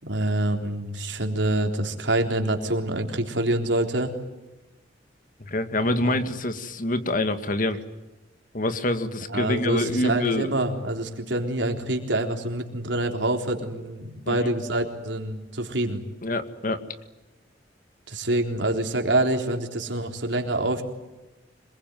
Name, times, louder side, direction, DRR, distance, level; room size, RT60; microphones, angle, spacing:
voice 1, 0.0-4.1 6.0-6.1 9.3-16.0 18.1-20.8, right 1 dB, 80° right, 4 dB, 3.8 m, -26 dB
voice 2, 5.4-7.8 8.5-10.5 14.3-14.4 16.2-16.8, left 1 dB, 45° left, 10 dB, 2.0 m, -26 dB
26.5 x 21.5 x 9.3 m, 1.1 s
head